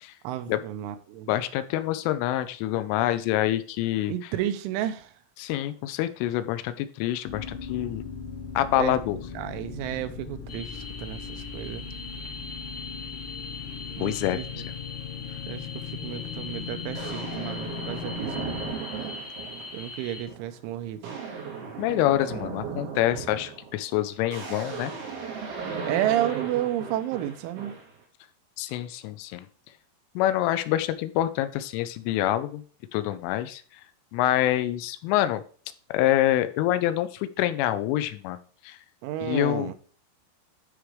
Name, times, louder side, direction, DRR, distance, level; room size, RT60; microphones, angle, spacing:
voice 1, 0.2-1.3 4.1-5.1 8.8-9.0 9.4-11.9 14.0-14.4 15.5-18.7 19.7-21.2 25.8-27.7 39.0-39.8, right 12 dB, 85° right, 3.1 m, -31 dB
voice 2, 1.3-4.1 5.4-8.0 8.6-9.2 14.0-14.7 21.8-24.9 28.6-29.5 30.2-32.6 32.9-33.6 34.1-35.4 35.9-38.4 38.6-38.8 39.2-39.7, left 13 dB, 85° left, 3.1 m, -26 dB
sound 1, 7.2-18.8, left 7 dB, 60° left, 4.3 m, -38 dB
sound 2, 10.5-20.2, left 4 dB, 40° left, 4.1 m, -41 dB
sound 3, 16.1-16.2 16.9-19.8 20.3-20.6 20.8-28.0, right 6 dB, 70° right, 5.0 m, -36 dB
12.5 x 4.9 x 3.2 m
omnidirectional pair, 5.7 m